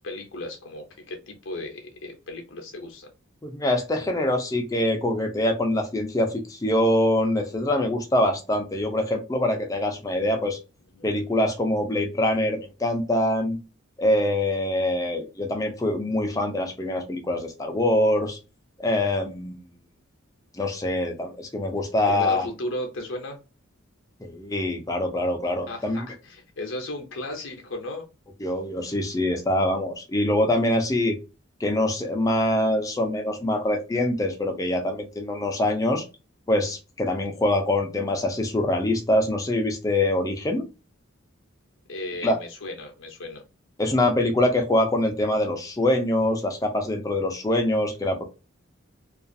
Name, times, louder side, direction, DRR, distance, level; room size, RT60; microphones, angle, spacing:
voice 1, 0.0-3.1 10.9-11.4 22.1-23.4 25.7-28.0 41.9-43.4, left 1 dB, 70° left, 0.6 m, -35 dB
voice 2, 3.4-10.6 11.0-13.6 14.0-18.4 18.8-19.7 20.5-22.5 24.2-26.1 28.4-31.2 31.6-36.0 36.5-40.6 42.2-42.4 43.8-48.2, left 1 dB, 15° left, 0.4 m, -24 dB
2.4 x 2.3 x 2.5 m
head